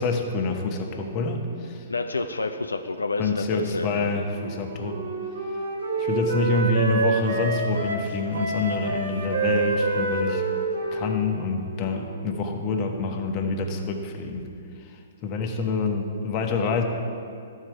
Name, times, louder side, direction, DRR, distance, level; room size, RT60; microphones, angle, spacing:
voice 1, 0.0-1.8 3.2-5.0 6.0-10.4 10.9-14.4 14.8-16.8, left 3 dB, 35° left, 3 dB, 1.1 m, -27 dB
voice 2, 1.9-4.1, left 3 dB, 90° left, 6 dB, 0.4 m, -29 dB
Wind instrument woodwind instrument, 4.3-12.3, right 3 dB, 80° right, 1.3 m, -28 dB
13.5 x 4.7 x 4.7 m, 2.4 s
hypercardioid pair, 120°, 0 cm